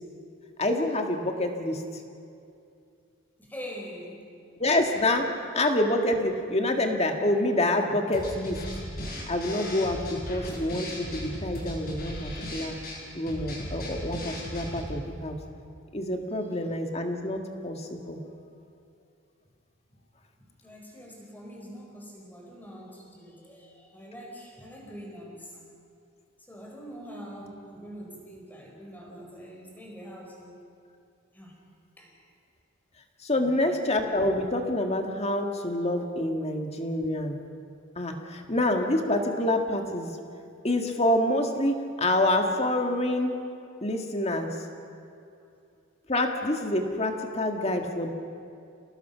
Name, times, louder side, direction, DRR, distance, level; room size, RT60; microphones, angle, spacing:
voice 1, 0.6-1.8 4.6-5.3 5.5-8.6 9.3-12.8 13.1-15.4 15.9-18.2 33.2-37.4 38.0-40.1 40.6-43.4 43.8-44.5 46.1-48.1, left 1 dB, 30° left, 3 dB, 1.9 m, -27 dB
voice 2, 3.4-4.3 20.4-25.6 26.5-30.5 31.3-31.6 32.0-32.1 33.4-33.5 36.3-36.4, equal, 10° left, -1 dB, 4.3 m, -44 dB
sound 1, 8.1-15.0, left 1 dB, 45° left, 6.0 m, -37 dB
30.0 x 18.5 x 5.8 m, 2.5 s
head